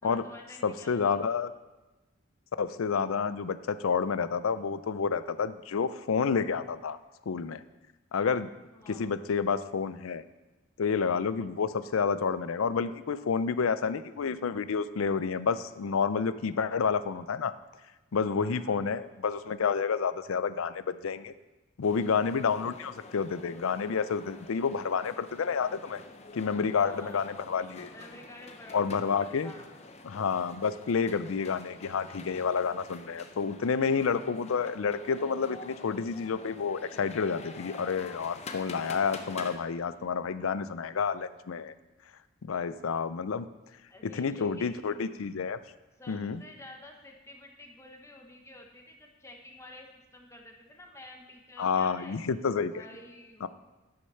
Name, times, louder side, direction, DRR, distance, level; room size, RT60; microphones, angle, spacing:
voice 1, 0.0-1.2 8.7-9.2 18.3-18.8 26.8-27.5 27.9-29.7 43.9-44.9 46.0-49.9 50.1-52.2 52.7-53.5, left 1 dB, 15° left, 1 dB, 1.2 m, -50 dB
voice 2, 0.6-1.5 2.6-7.0 7.3-7.6 8.1-8.5 8.9-10.2 10.8-17.5 18.1-21.3 21.8-26.0 26.3-27.9 28.7-29.5 30.0-41.7 42.4-43.5 44.0-45.6 46.1-46.4 51.6-52.7 53.4-53.5, left 5 dB, 85° left, 14 dB, 0.5 m, -29 dB
sound 1, 21.8-39.6, left 3 dB, 35° left, 0.7 m, -47 dB
11.0 x 6.6 x 5.6 m, 1.1 s
head